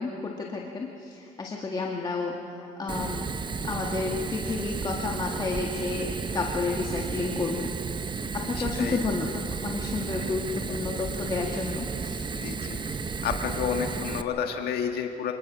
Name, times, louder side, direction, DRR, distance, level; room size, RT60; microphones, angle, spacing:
voice 1, 0.0-3.3 3.6-7.7 8.3-12.3, left 3 dB, 25° left, 0 dB, 1.7 m, -31 dB
Fire, 2.9-14.2, right 5 dB, 25° right, 0.9 m, -33 dB
voice 2, 8.3-9.0 10.1-10.2 10.6-10.8 12.3-12.8 13.2-15.3, left 7 dB, 70° left, 4 dB, 1.6 m, -31 dB
25.5 x 19.0 x 6.2 m, 2.9 s
cardioid pair, 110°, 17 cm